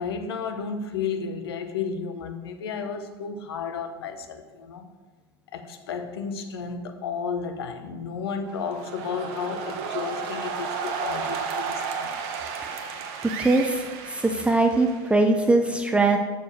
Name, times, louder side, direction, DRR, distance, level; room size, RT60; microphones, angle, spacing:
voice 1, 0.0-4.9 5.5-12.1, left 6 dB, 75° left, 0.9 m, -32 dB
sound 1, 8.5-15.4, right 6 dB, 55° right, 1.0 m, -33 dB
voice 2, 13.4-13.8 14.1-16.2, right 2 dB, 10° right, 0.7 m, -21 dB
6.8 x 5.1 x 6.6 m
hypercardioid pair, 85°, 13 cm